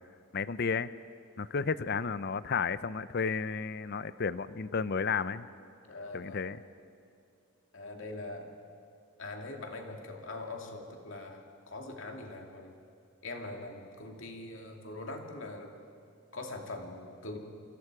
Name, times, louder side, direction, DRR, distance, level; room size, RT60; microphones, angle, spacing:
voice 1, 0.3-0.9 1.4-5.5 6.1-6.6, left 5 dB, 50° left, 15 dB, 0.6 m, -32 dB
voice 2, 5.9-6.4 7.7-8.5 9.2-12.8 13.2-15.7 16.3-17.4, left 2 dB, 65° left, 2 dB, 2.5 m, -42 dB
28.0 x 24.5 x 4.9 m, 2.4 s
head